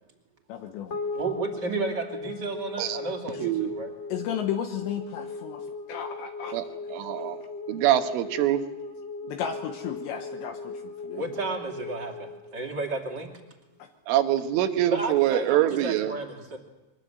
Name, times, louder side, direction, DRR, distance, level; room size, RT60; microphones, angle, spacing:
voice 1, 0.5-1.0 3.3-3.5 4.1-6.6 6.8-6.9 9.3-11.3 13.8-13.9, left 9 dB, 75° left, 5 dB, 3.2 m, -34 dB
sound 1, 0.9-13.4, left 3 dB, 30° left, 1.4 m, -38 dB
voice 2, 1.1-3.9 9.2-9.3 11.1-13.3 14.9-16.6, right 3 dB, 30° right, 1 dB, 2.4 m, -32 dB
voice 3, 6.9-7.4 7.7-8.6 14.1-16.1, right 12 dB, 85° right, 8 dB, 3.7 m, -24 dB
23.0 x 20.0 x 8.0 m, 1.1 s
omnidirectional pair, 5.5 m